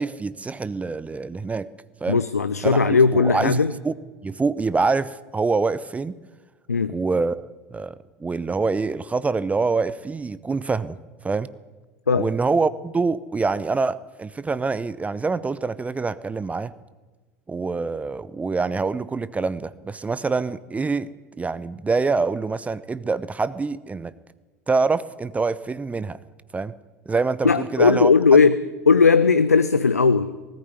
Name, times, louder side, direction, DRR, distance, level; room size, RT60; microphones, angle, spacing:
voice 1, 0.0-1.7 2.0-2.2 2.6-3.6 3.8-3.9 4.2-6.1 6.9-7.4 7.7-11.0 11.2-11.5 12.2-16.7 17.5-21.1 21.4-24.1 24.7-26.2 26.5-26.7 27.1-28.1, right 4 dB, 15° right, 17 dB, 0.7 m, -25 dB
voice 2, 2.1-3.7 6.7-6.9 12.1-12.3 27.4-28.6 28.9-30.3, left 5 dB, 85° left, 14 dB, 0.6 m, -17 dB
19.5 x 14.0 x 9.5 m, 1.3 s
figure-of-eight pair, 75°, 8 cm